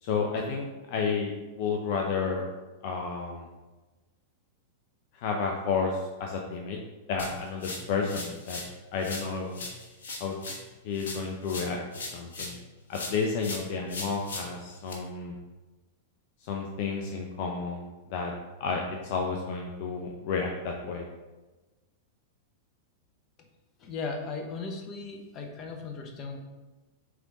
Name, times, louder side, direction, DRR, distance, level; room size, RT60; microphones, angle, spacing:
voice 1, 0.0-2.4 2.8-3.5 5.1-6.8 7.1-8.6 8.9-9.6 10.2-10.4 10.8-11.8 12.1-12.6 12.9-15.4 16.4-18.3 18.6-21.1, left 5 dB, 50° left, 1 dB, 0.7 m, -31 dB
sound 1, 7.2-8.7 9.0-12.6 12.9-14.9, left 3 dB, 70° left, 1.4 m, -39 dB
voice 2, 23.8-26.4, left 4 dB, 35° left, 3 dB, 1.1 m, -37 dB
7.8 x 3.8 x 4.0 m, 1.2 s
figure-of-eight pair, 95°, 0 cm